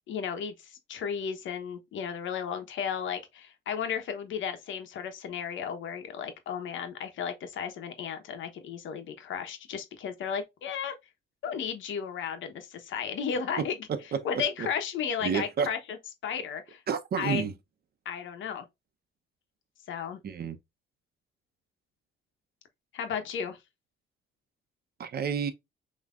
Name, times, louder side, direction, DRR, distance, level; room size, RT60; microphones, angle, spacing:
voice 1, 0.1-10.9 11.4-13.8 14.2-16.0 16.2-16.8 17.2-17.4 18.0-18.6 19.9-20.2 22.9-23.6, left 7 dB, 75° left, 1.2 m, -34 dB
voice 2, 15.2-15.7 16.9-17.5 20.2-20.6 25.0-25.5, right 6 dB, 50° right, 0.9 m, -30 dB
5.7 x 3.1 x 2.5 m
cardioid pair, 90°, 20 cm